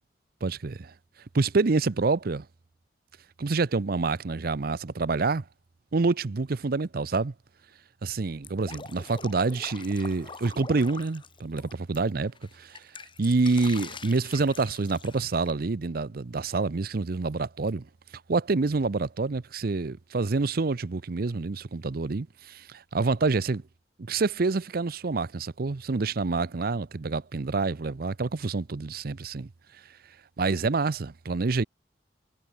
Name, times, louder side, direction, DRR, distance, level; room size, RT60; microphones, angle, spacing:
voice 1, 0.4-0.9 1.3-2.5 3.4-5.4 5.9-7.3 8.0-12.8 13.2-17.9 18.3-23.6 24.0-29.5 30.4-31.6, right 3 dB, 60° right, 0.6 m, -27 dB
Drip, 8.4-12.0 12.4-15.5, left 5 dB, 30° left, 1.4 m, -44 dB
head